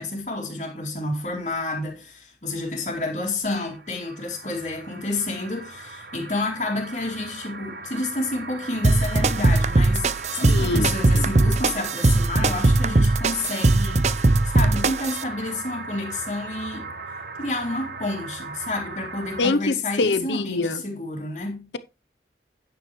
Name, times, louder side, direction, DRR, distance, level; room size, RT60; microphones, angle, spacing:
voice 1, 0.0-10.1 10.4-16.9 17.4-21.7, left 2 dB, 45° left, 2.8 m, -30 dB
sound 1, 3.6-19.5, right 4 dB, 60° right, 1.6 m, -37 dB
sound 2, 8.8-15.2, right 2 dB, 40° right, 0.6 m, -20 dB
voice 2, 10.5-11.3 19.4-20.8, left 3 dB, 90° left, 0.8 m, -25 dB
9.8 x 9.5 x 3.2 m
head